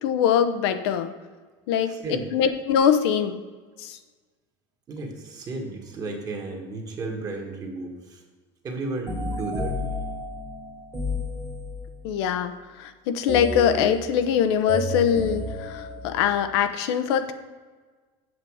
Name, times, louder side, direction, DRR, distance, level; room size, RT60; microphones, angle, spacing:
voice 1, 0.0-1.1 1.7-3.5 3.8-4.0 12.0-17.3, left 8 dB, 85° left, 9 dB, 0.8 m, -23 dB
voice 2, 1.9-2.3 4.9-8.2 8.6-9.8, right 3 dB, 30° right, 1 dB, 1.6 m, -33 dB
sound 1, 9.1-12.1 13.3-16.6, left 1 dB, 15° right, 1.4 m, -32 dB
8.1 x 6.8 x 4.8 m, 1.4 s
cardioid pair, 155°, 13 cm